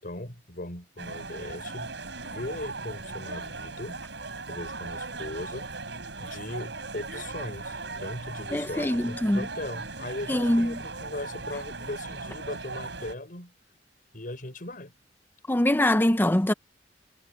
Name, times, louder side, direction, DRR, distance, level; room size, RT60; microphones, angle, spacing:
voice 1, 0.0-1.9 2.2-4.0 4.5-5.6 6.2-13.5 14.1-14.9, left 1 dB, 50° left, 5.9 m, -38 dB
sound 1, 1.0-13.2, right 3 dB, 75° right, 7.0 m, -38 dB
voice 2, 8.5-9.5 10.3-10.8 15.5-16.5, left 1 dB, 10° left, 0.6 m, -23 dB
head